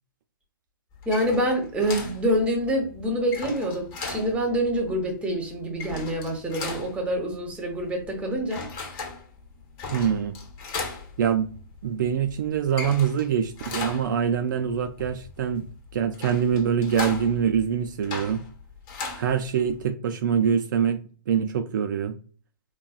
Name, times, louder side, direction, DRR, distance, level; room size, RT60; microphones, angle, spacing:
sound 1, 0.9-19.8, left 4 dB, 30° left, 1.0 m, -38 dB
voice 1, 1.0-8.7, equal, 10° right, 2 dB, 0.9 m, -26 dB
voice 2, 9.9-10.4 11.2-11.5 11.8-15.6 15.9-18.4 19.1-22.2, right 8 dB, 60° right, 7 dB, 0.4 m, -24 dB
4.0 x 2.2 x 2.3 m, 0.40 s
hypercardioid pair, 135°, 12 cm